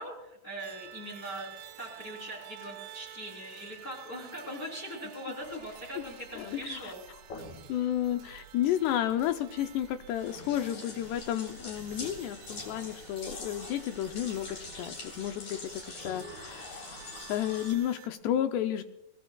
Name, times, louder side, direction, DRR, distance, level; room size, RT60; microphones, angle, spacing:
voice 1, 0.0-1.5 1.8-7.0, right 1 dB, 20° left, 0 dB, 3.3 m, -41 dB
sound 1, 0.6-18.1, right 13 dB, 85° right, 3.2 m, -52 dB
sound 2, 5.4-17.7, left 2 dB, 40° left, 4.4 m, -45 dB
voice 2, 6.3-6.9 7.7-18.8, left 11 dB, 80° left, 8 dB, 2.5 m, -32 dB
22.0 x 19.5 x 2.3 m, 0.84 s
omnidirectional pair, 5.3 m